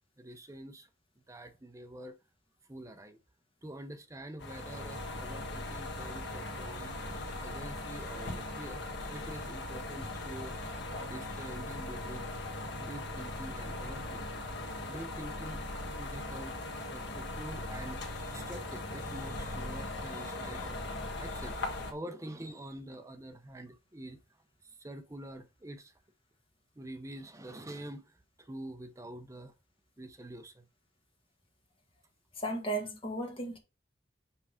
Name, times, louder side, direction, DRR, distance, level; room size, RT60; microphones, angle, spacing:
voice 1, 0.2-0.9 1.3-2.2 2.7-3.2 3.6-6.9 7.3-8.8 9.1-10.6 10.9-14.4 14.8-15.6 15.9-16.6 16.9-24.2 24.6-25.9 26.8-29.5 30.0-30.6, right 1 dB, 15° right, 0.6 m, -46 dB
sound 1, 4.4-21.9, left 2 dB, 65° left, 1.4 m, -39 dB
voice 2, 32.4-33.6, right 2 dB, 30° left, 1.8 m, -35 dB
5.6 x 4.6 x 5.0 m
head